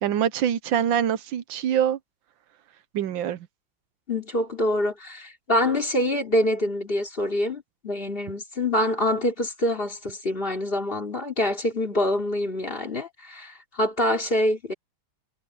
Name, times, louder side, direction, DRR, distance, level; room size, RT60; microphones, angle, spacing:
voice 1, 0.0-2.0 2.9-3.4, right 9 dB, 80° right, 1.5 m, -24 dB
voice 2, 4.1-14.7, left 1 dB, 25° left, 3.1 m, -25 dB
omnidirectional pair, 2.1 m